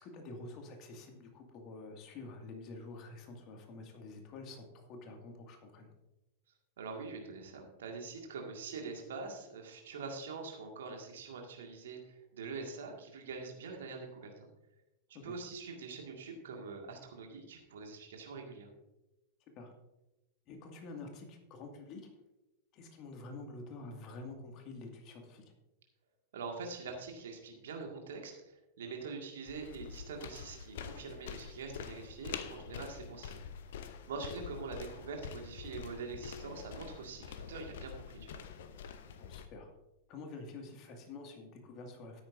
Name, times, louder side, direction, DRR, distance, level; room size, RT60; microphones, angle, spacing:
voice 1, 0.0-5.9 15.2-15.3 19.6-19.7 20.5-22.0 22.7-25.4 39.2-39.7 40.1-42.2, left 3 dB, 35° left, 3 dB, 2.2 m, -48 dB
voice 2, 6.8-14.5 15.2-18.7 26.3-33.8 34.1-38.4, right 4 dB, 60° right, 2 dB, 2.0 m, -44 dB
sound 1, 29.5-39.5, left 7 dB, 55° left, 0.8 m, -46 dB
13.0 x 10.0 x 2.7 m, 0.95 s
figure-of-eight pair, 90°, 0 cm